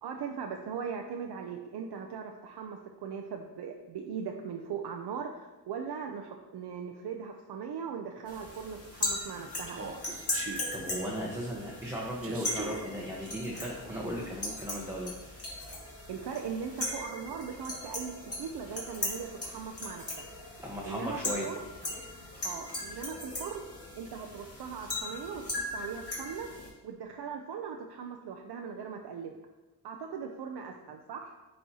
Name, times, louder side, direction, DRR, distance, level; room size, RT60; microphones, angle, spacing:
voice 1, 0.0-9.8 16.1-20.3 20.9-21.6 22.4-23.6 24.0-26.5 26.8-29.4 29.8-31.3, right 6 dB, 70° right, 3 dB, 0.6 m, -39 dB
sound 1, 8.3-26.7, left 1 dB, 35° left, 2.1 m, -38 dB
Human voice, 9.7-10.6 12.2-12.8, right 3 dB, 35° right, 0.8 m, -40 dB
voice 2, 10.7-15.1 20.6-21.5, equal, 5° right, -4 dB, 1.0 m, -36 dB
10.0 x 4.3 x 2.8 m, 1.1 s
cardioid pair, 105°, 42 cm